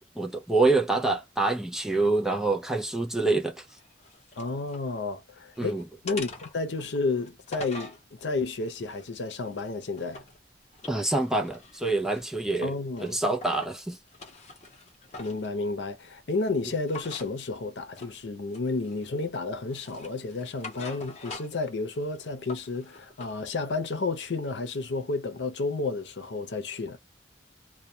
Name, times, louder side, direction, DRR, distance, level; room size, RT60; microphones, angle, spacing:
voice 1, 0.2-3.7 5.6-5.9 10.9-12.7 13.0-14.0, right 2 dB, 5° right, 0.4 m, -26 dB
sound 1, 3.7-4.9 5.3-5.6 6.1-8.0 8.6-10.4 10.7-12.6 13.0-13.7 14.1-15.5 16.9-17.3 18.0-18.2 18.5-19.2 19.7-21.7 22.0-23.3, left 3 dB, 40° left, 0.8 m, -44 dB
voice 2, 4.4-10.2 12.6-13.2 15.2-27.0, left 3 dB, 90° left, 0.6 m, -31 dB
2.2 x 2.2 x 2.7 m
head